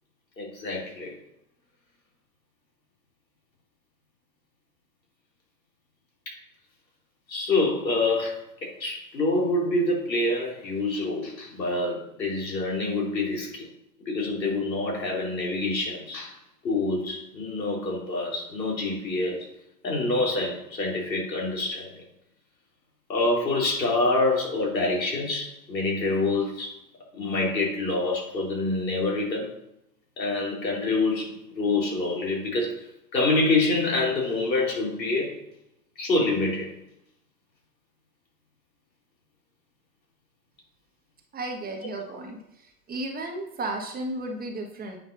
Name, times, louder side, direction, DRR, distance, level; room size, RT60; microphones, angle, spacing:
voice 1, 0.4-1.1 7.3-13.7 14.0-16.3 16.6-19.5 19.8-21.9 23.1-26.8 27.1-29.5 30.2-32.8 33.1-35.4 36.0-36.7, left 2 dB, 85° left, -2 dB, 3.5 m, -26 dB
voice 2, 41.3-42.4 42.9-45.0, right 2 dB, 20° right, 2 dB, 1.5 m, -33 dB
8.8 x 4.9 x 5.4 m, 0.82 s
hypercardioid pair, 110°, 50 cm